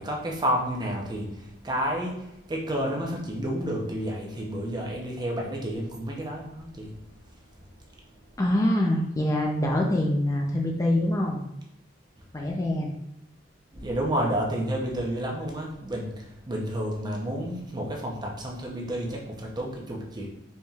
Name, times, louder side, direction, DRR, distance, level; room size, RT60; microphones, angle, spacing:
voice 1, 0.0-6.9 13.7-20.3, equal, 25° right, -1 dB, 0.7 m, -30 dB
voice 2, 8.4-11.5 12.3-12.9, left 1 dB, 20° left, -1 dB, 0.4 m, -25 dB
4.1 x 3.5 x 2.4 m, 0.85 s
head